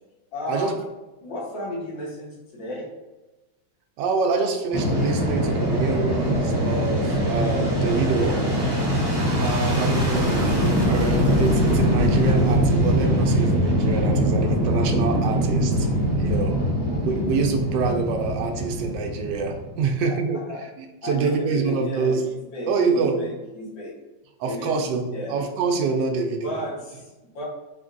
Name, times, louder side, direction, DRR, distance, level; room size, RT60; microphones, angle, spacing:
voice 1, 0.3-0.7 1.2-2.9 16.5-17.1 20.5-20.6 21.0-22.2 22.5-23.9 24.5-25.4 26.4-27.5, left 1 dB, 85° left, -4 dB, 1.8 m, -34 dB
voice 2, 4.0-8.4 9.4-15.9 16.2-16.6 17.0-20.4 20.8-22.2 22.7-23.2 24.4-26.6, right 4 dB, 75° right, 4 dB, 1.2 m, -26 dB
Fixed-wing aircraft airplane, 4.7-19.9, equal, 30° right, 0.4 m, -22 dB
4.2 x 3.2 x 2.5 m, 1.1 s
omnidirectional pair, 2.0 m